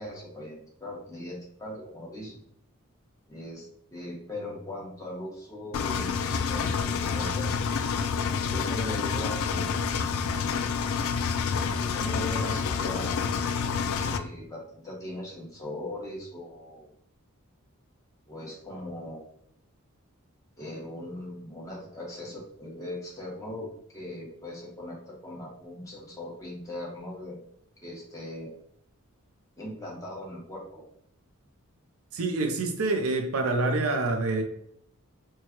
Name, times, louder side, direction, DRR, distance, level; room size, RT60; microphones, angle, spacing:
voice 1, 0.0-2.4 3.3-7.6 8.5-10.0 11.8-13.2 14.0-16.9 18.3-19.2 20.6-27.4 27.8-28.5 29.6-30.8, left 1 dB, 15° left, 1.1 m, -39 dB
Engine, 5.7-14.2, left 6 dB, 70° left, 0.3 m, -28 dB
voice 2, 32.1-34.4, right 2 dB, 70° right, 0.6 m, -26 dB
4.5 x 2.3 x 2.9 m
head